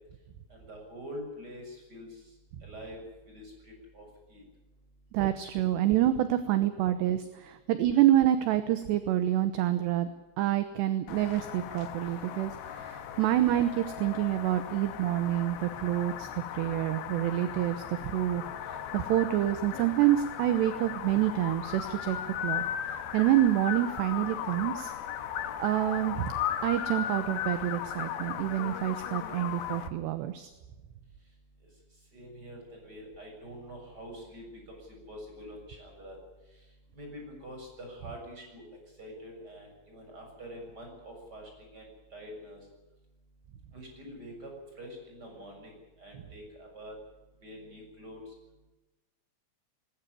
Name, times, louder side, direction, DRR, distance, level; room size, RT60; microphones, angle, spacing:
voice 1, 0.5-2.1 2.6-3.0 3.3-4.4 13.1-13.2 32.1-36.2 36.9-38.6 39.0-42.6 43.7-44.5 44.8-45.7 46.0-46.9 47.4-48.2, equal, 20° right, 2 dB, 7.2 m, -45 dB
voice 2, 5.1-10.1 10.4-24.9 25.6-26.3 26.6-30.5, right 13 dB, 70° right, 10 dB, 2.9 m, -27 dB
sound 1, 11.1-29.9, left 10 dB, 65° left, 2.6 m, -37 dB
20.5 x 17.0 x 10.0 m, 1.1 s
omnidirectional pair, 5.6 m